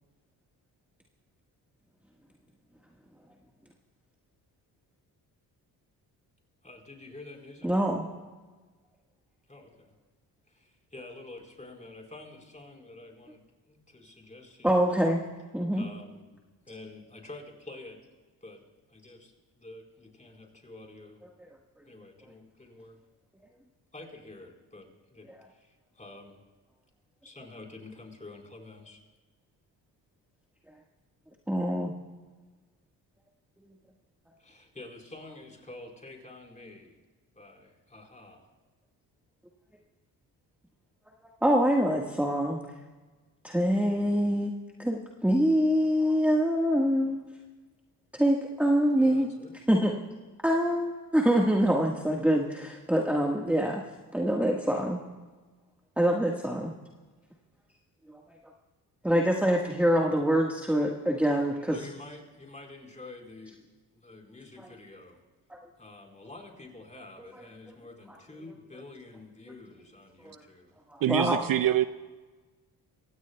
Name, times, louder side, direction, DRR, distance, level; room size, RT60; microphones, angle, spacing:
voice 1, 6.6-7.7 9.5-9.9 10.5-14.9 15.7-18.1 18.4-18.6 18.9-21.2 21.9-23.0 23.9-25.7 26.0-26.4 27.2-29.0 34.4-37.0 37.4-38.4 49.0-49.6 61.7-63.6 63.9-65.2 65.8-70.7, left 2 dB, 20° left, 4.4 m, -48 dB
voice 2, 7.6-8.0 14.6-15.2 15.5-15.9 25.3-25.4 31.5-31.9 41.4-42.6 43.4-44.5 44.8-47.2 48.1-49.3 49.7-49.9 50.4-53.8 54.1-55.0 56.0-56.7 59.0-61.9 64.6-64.7 65.5-65.6 70.2-70.3 70.9-71.4, equal, 5° right, 1.6 m, -25 dB
voice 3, 71.0-71.8, right 12 dB, 55° right, 0.5 m, -25 dB
24.0 x 16.5 x 2.3 m
cardioid pair, 70°, 40 cm